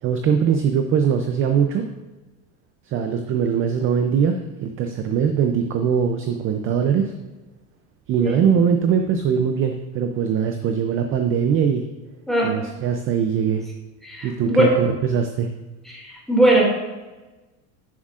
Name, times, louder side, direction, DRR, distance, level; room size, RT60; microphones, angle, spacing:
voice 1, 0.0-1.8 2.8-7.1 8.1-11.9 12.4-13.7 14.2-15.5, right 7 dB, 30° right, 6 dB, 0.5 m, -21 dB
voice 2, 14.0-14.7 15.9-16.6, right 1 dB, ahead, -3 dB, 2.2 m, -19 dB
10.5 x 7.3 x 2.4 m, 1.1 s
cardioid pair, 145°, 41 cm